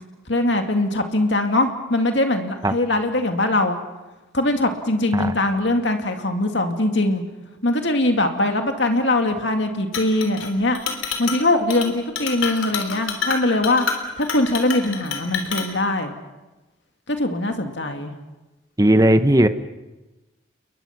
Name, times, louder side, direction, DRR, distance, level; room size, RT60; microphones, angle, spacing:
voice 1, 0.3-3.8 4.3-7.2 7.6-10.8 11.2-13.9 14.2-16.1 17.1-18.1, left 2 dB, 65° left, 5 dB, 2.4 m, -21 dB
Chink clink, 9.9-10.5 10.7-11.4 11.7-11.9 12.2-15.7, left 6 dB, 85° left, 3.7 m, -28 dB
voice 2, 18.8-19.5, right 1 dB, 20° right, 10 dB, 0.9 m, -16 dB
29.5 x 22.0 x 6.0 m, 1.1 s
head